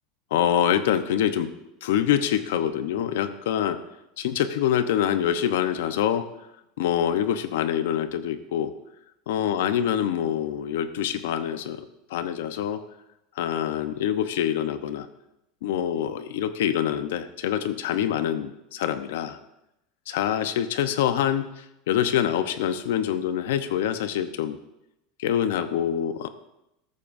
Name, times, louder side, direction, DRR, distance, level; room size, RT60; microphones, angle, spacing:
voice 1, 0.3-1.5 1.8-3.8 4.2-6.3 6.8-8.7 9.3-11.8 12.1-12.8 13.4-15.1 15.6-19.4 20.1-21.5 21.9-24.6 25.2-26.3, left 10 dB, 90° left, 11 dB, 0.8 m, -25 dB
14.0 x 13.5 x 2.6 m, 0.88 s
supercardioid pair, 175°, 0 cm